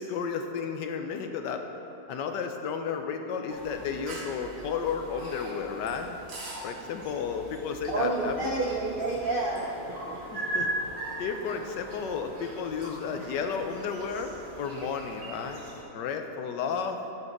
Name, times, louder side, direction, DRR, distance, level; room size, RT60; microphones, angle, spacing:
voice 1, 0.0-1.6 2.1-6.2 6.6-8.5 10.3-10.7 11.2-15.6 15.9-17.0, left 6 dB, 90° left, 6 dB, 1.4 m, -33 dB
sound 1, 3.5-15.8, right 1 dB, 50° right, 1.8 m, -39 dB
voice 2, 7.9-10.5, right 2 dB, 75° right, 0 dB, 0.5 m, -30 dB
10.5 x 7.4 x 4.0 m, 2.9 s
omnidirectional pair, 1.9 m